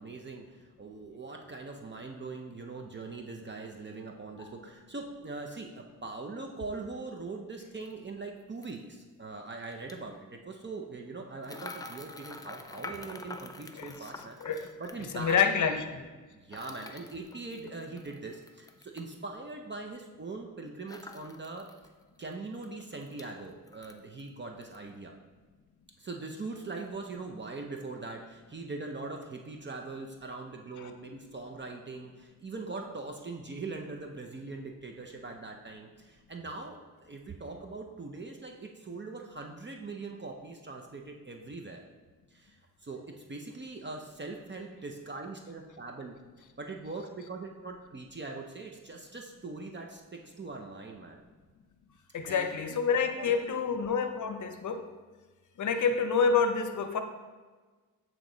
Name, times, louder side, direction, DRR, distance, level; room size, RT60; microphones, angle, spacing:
voice 1, 0.0-14.4 14.8-15.8 16.3-21.7 22.2-25.1 26.0-41.8 42.3-46.1 46.6-51.2 52.2-52.5 52.9-53.6, right 3 dB, 30° right, 2 dB, 0.6 m, -41 dB
sound 1, 7.8-7.9 8.6-8.8 9.7-10.0 11.4-15.4 16.5-19.1 20.9-21.9 22.2-22.3 22.6-23.3 23.7-24.3 24.6-24.8, left 2 dB, 10° left, 0.4 m, -46 dB
voice 2, 15.1-15.8 30.8-30.9 52.1-54.8 55.6-57.0, left 6 dB, 60° left, 7 dB, 0.7 m, -28 dB
8.0 x 3.0 x 3.8 m, 1.4 s
cardioid pair, 75°, 35 cm